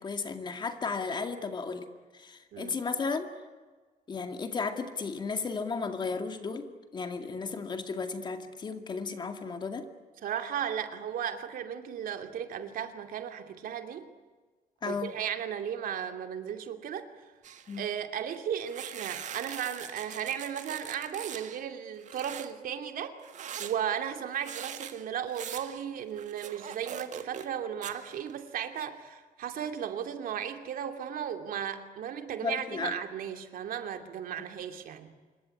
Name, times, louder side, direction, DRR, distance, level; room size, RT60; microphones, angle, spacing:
voice 1, 0.0-1.9 2.1-3.3 4.1-9.9 14.8-15.1 17.7-17.9 32.4-33.0, left 4 dB, 30° left, 7 dB, 2.2 m, -34 dB
voice 2, 10.2-14.1 14.8-17.1 17.8-23.2 23.6-35.1, right 9 dB, 75° right, 7 dB, 2.7 m, -35 dB
sound 1, 17.4-17.9 18.7-21.6 22.0-22.5 23.2-27.6 27.8-28.4, right 9 dB, 55° right, 1.7 m, -42 dB
26.5 x 22.5 x 9.9 m, 1.4 s
cardioid pair, 175°, 15 cm